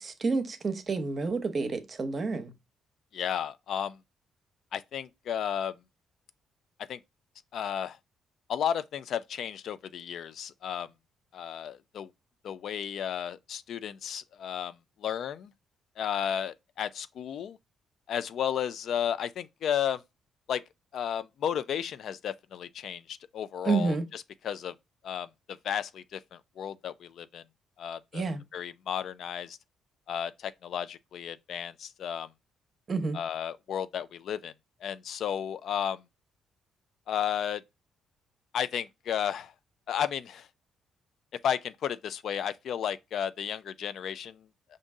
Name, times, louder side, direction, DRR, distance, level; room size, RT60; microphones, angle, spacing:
voice 1, 0.0-2.5 23.6-24.1 28.1-28.4 32.9-33.2, right 4 dB, 40° right, 0.8 m, -29 dB
voice 2, 3.1-4.0 4.7-5.8 6.8-7.0 7.5-8.0 8.5-10.9 11.3-12.1 12.4-15.5 16.0-17.6 18.1-20.0 20.5-20.6 20.9-24.8 25.0-27.4 27.8-28.2 28.5-29.6 30.1-32.3 33.1-34.5 34.8-36.0 37.1-37.6 38.5-39.5 39.9-40.5 41.4-44.4, left 9 dB, 70° left, 0.3 m, -33 dB
5.2 x 2.6 x 3.6 m
cardioid pair, 90°, 0 cm